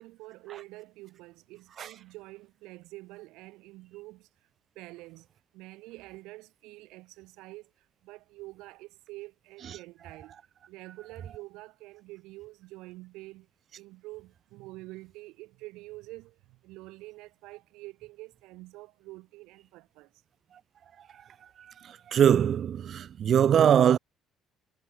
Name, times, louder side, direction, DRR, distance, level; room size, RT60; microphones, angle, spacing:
voice 1, 0.0-4.3 4.8-5.3 5.5-10.3 10.7-13.5 13.8-20.1, right 20 dB, 80° right, 5.2 m, -47 dB
voice 2, 22.1-24.0, right 9 dB, 55° right, 0.6 m, -21 dB
supercardioid pair, 80°, 0 cm